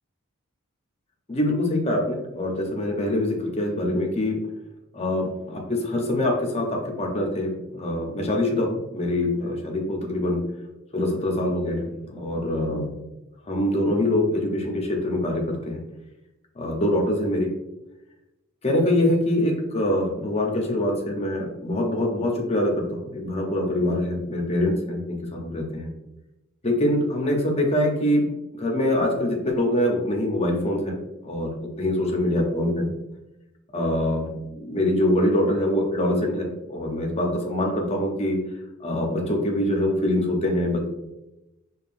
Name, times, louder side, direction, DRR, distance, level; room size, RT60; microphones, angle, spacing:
voice 1, 1.3-4.4 4.9-10.4 10.9-13.0 13.5-15.8 16.6-17.5 18.6-25.9 26.6-31.0 31.2-31.5 31.8-32.9 33.7-34.3 34.6-38.4 38.8-40.8, left 1 dB, 30° left, 1 dB, 0.7 m, -24 dB
5.3 x 2.3 x 2.5 m, 0.95 s
head